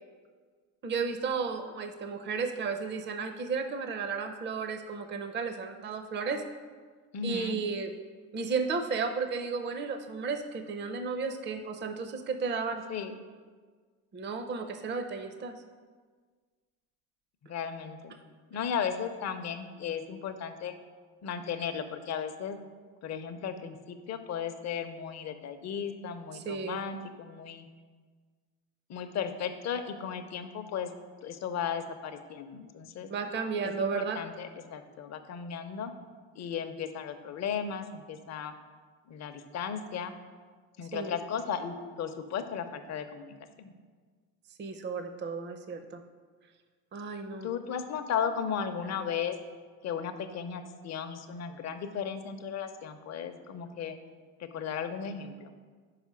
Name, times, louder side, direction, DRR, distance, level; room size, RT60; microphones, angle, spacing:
voice 1, 0.8-6.4 7.2-7.9 8.3-12.8 14.1-15.5 26.3-26.8 33.1-34.2 40.9-41.1 44.6-46.0 46.9-47.5, right 5 dB, 25° right, 7 dB, 0.6 m, -33 dB
voice 2, 7.1-7.6 12.9-13.1 17.5-18.1 18.5-20.7 21.2-22.6 23.0-27.7 28.9-30.9 31.2-33.1 33.6-35.9 36.4-38.5 39.1-40.2 40.8-43.7 47.4-49.4 49.8-54.0 54.4-55.5, left 7 dB, 40° left, 8 dB, 0.7 m, -35 dB
5.1 x 4.9 x 6.2 m, 1.5 s
supercardioid pair, 75°, 41 cm